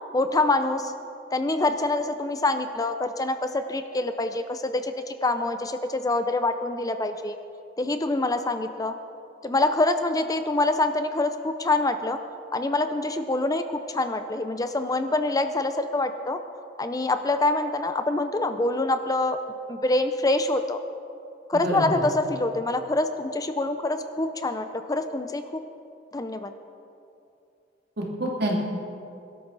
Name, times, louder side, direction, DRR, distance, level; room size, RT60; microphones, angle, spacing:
voice 1, 0.1-0.9 1.3-7.4 7.8-9.0 9.4-12.2 12.5-16.4 16.8-19.4 19.7-20.8 21.5-25.4 26.1-26.5, left 2 dB, 20° left, 8 dB, 0.6 m, -25 dB
voice 2, 21.6-22.0 28.0-28.6, equal, 60° right, -2 dB, 2.7 m, -27 dB
22.5 x 12.5 x 4.0 m, 2.6 s
head